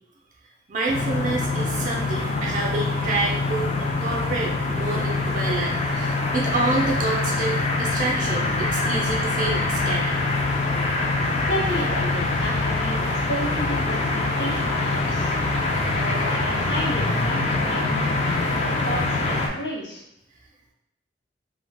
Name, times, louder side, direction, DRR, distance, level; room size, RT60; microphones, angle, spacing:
voice 1, 0.7-10.2 15.2-15.3, right 2 dB, 45° right, -1 dB, 0.4 m, -28 dB
sound 1, 0.9-19.5, left 3 dB, 35° left, 0.3 m, -24 dB
voice 2, 11.4-20.0, equal, 75° left, -3 dB, 0.8 m, -32 dB
2.3 x 2.1 x 3.3 m, 0.80 s
head